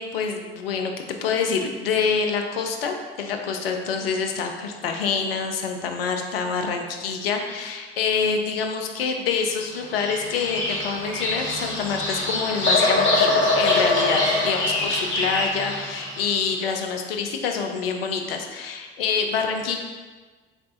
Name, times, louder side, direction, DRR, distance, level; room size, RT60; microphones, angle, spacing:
voice 1, 0.0-19.8, left 5 dB, 80° left, 4 dB, 0.5 m, -26 dB
Bird vocalization bird call bird song, 9.7-16.3, left 2 dB, 40° left, 1.3 m, -23 dB
3.9 x 3.3 x 3.9 m, 1.4 s
figure-of-eight pair, 45°, 29 cm